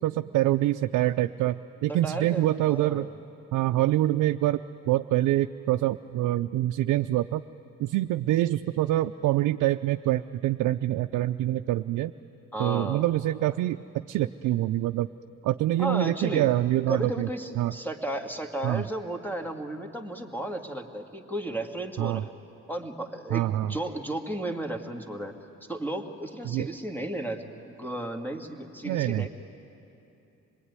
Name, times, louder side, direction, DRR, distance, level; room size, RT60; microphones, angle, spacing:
voice 1, 0.0-3.1 3.5-7.4 7.8-12.1 12.6-15.1 15.4-17.3 17.6-17.7 18.6-18.8 22.0-22.2 23.3-23.7 26.4-26.7 28.8-29.3, right 14 dB, 85° right, 7 dB, 0.5 m, -25 dB
voice 2, 1.9-3.1 12.5-13.0 15.8-16.4 16.9-22.3 22.7-25.3 25.7-29.3, right 1 dB, 5° left, 4 dB, 2.1 m, -34 dB
26.0 x 20.5 x 9.7 m, 2.8 s
cardioid pair, 90°, 30 cm